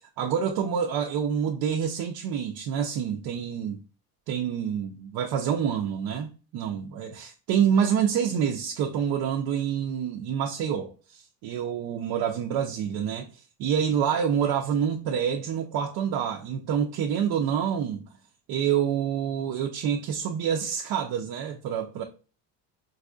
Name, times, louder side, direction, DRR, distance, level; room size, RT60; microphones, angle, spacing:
voice 1, 0.0-3.8 4.3-13.3 13.6-18.0 18.5-22.0, right 8 dB, 60° right, 0.5 m, -27 dB
4.0 x 2.6 x 2.2 m
cardioid pair, 115°, 41 cm